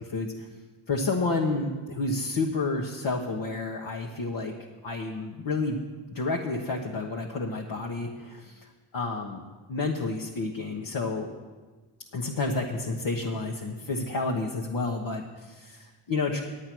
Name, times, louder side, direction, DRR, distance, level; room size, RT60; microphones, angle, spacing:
voice 1, 0.1-0.5 0.9-4.6 4.8-5.8 6.1-8.7 8.9-9.4 9.7-11.3 12.1-16.4, left 3 dB, 60° left, -2 dB, 1.2 m, -30 dB
10.0 x 8.7 x 6.1 m, 1.3 s
cardioid pair, 75°, 50 cm